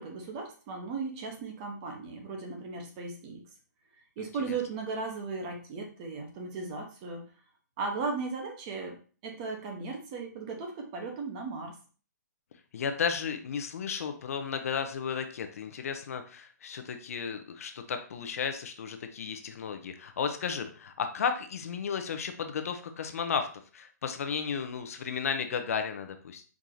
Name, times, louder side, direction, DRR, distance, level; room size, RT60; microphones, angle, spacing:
voice 1, 0.0-3.4 4.2-7.2 7.8-9.0 9.2-11.7, right 4 dB, 25° right, 2 dB, 0.9 m, -36 dB
voice 2, 4.2-4.6 12.7-23.5 23.7-26.4, left 6 dB, 50° left, 7 dB, 0.6 m, -34 dB
4.7 x 2.7 x 3.8 m, 0.38 s
hypercardioid pair, 165°, 10 cm